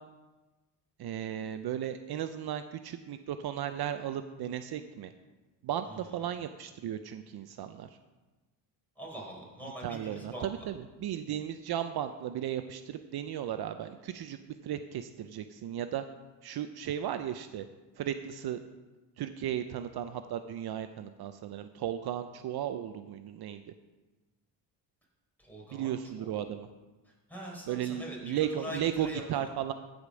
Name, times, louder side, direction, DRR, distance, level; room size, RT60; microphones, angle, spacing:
voice 1, 1.0-5.1 5.6-7.9 9.8-14.4 14.6-16.0 16.4-17.7 18.0-18.6 19.2-23.6 25.7-26.7 27.7-29.7, right 10 dB, 60° right, 9 dB, 0.6 m, -35 dB
voice 2, 5.9-6.2 9.0-10.5 25.4-26.4 27.0-29.5, equal, 5° left, -3 dB, 4.2 m, -43 dB
15.0 x 5.2 x 6.3 m, 1.2 s
cardioid pair, 110°, 42 cm